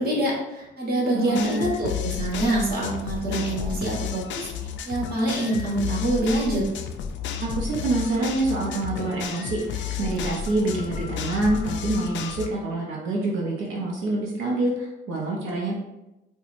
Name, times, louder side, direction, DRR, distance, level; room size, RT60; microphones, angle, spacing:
voice 1, 0.0-6.6, right 1 dB, 50° right, -4 dB, 1.4 m, -26 dB
voice 2, 1.1-1.8 7.4-15.7, right 2 dB, 85° right, -2 dB, 0.7 m, -26 dB
sound 1, 1.3-12.5, left 8 dB, 70° left, 0.4 m, -32 dB
4.4 x 2.3 x 2.5 m, 0.95 s
cardioid pair, 90°, 20 cm